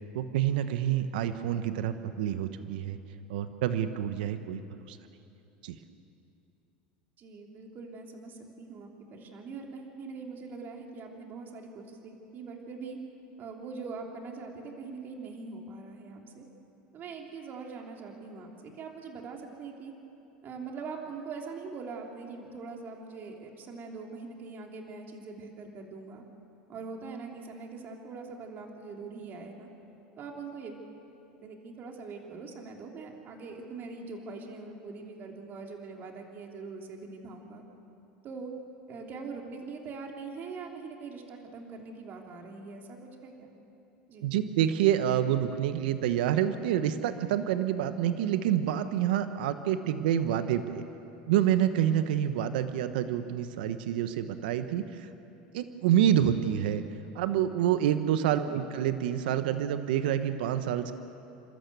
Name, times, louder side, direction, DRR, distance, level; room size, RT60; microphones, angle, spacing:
voice 1, 0.1-3.0 3.3-4.6 4.9-5.0 5.6-5.7 44.2-50.8 51.3-55.1 55.5-56.8 57.1-60.9, right 10 dB, 80° right, 10 dB, 1.1 m, -27 dB
voice 2, 7.2-13.0 13.4-16.5 16.9-19.9 20.4-26.2 26.7-29.7 30.2-30.9 31.4-37.6 38.2-38.5 38.9-43.5 44.1-44.3 58.5-58.6, right 4 dB, 40° right, 1 dB, 3.4 m, -42 dB
29.0 x 13.0 x 8.2 m, 2.8 s
supercardioid pair, 105°, 5 cm